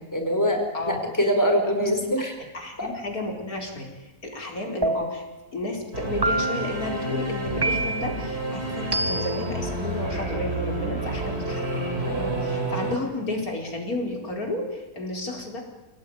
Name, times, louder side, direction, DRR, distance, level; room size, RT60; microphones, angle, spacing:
voice 1, 0.0-2.3 2.8-2.9, equal, 10° left, 3 dB, 5.1 m, -24 dB
voice 2, 2.5-3.9 4.2-5.2 5.5-15.6, left 2 dB, 75° left, 1 dB, 5.0 m, -32 dB
sound 1, 4.8-5.4 6.2-6.8 7.6-8.2 8.9-9.5, right 2 dB, 15° right, 1.2 m, -27 dB
Singing / Musical instrument, 5.9-12.9, right 2 dB, 45° right, 4.2 m, -29 dB
28.5 x 18.5 x 9.9 m, 1.2 s
omnidirectional pair, 1.5 m